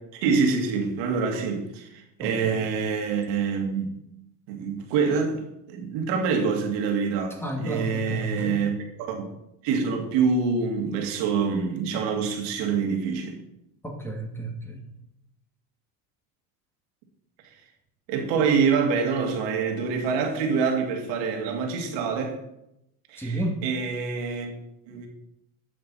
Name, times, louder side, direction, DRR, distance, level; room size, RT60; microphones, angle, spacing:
voice 1, 0.2-3.9 4.5-5.4 5.7-9.3 9.6-13.4 18.1-22.4 23.1-24.5 24.8-25.1, right 5 dB, 65° right, 2.3 m, -26 dB
voice 2, 2.2-2.7 7.4-8.7 13.8-14.8 23.2-23.6, right 1 dB, 5° left, 2.4 m, -31 dB
11.5 x 7.7 x 4.2 m
hypercardioid pair, 85°, 46 cm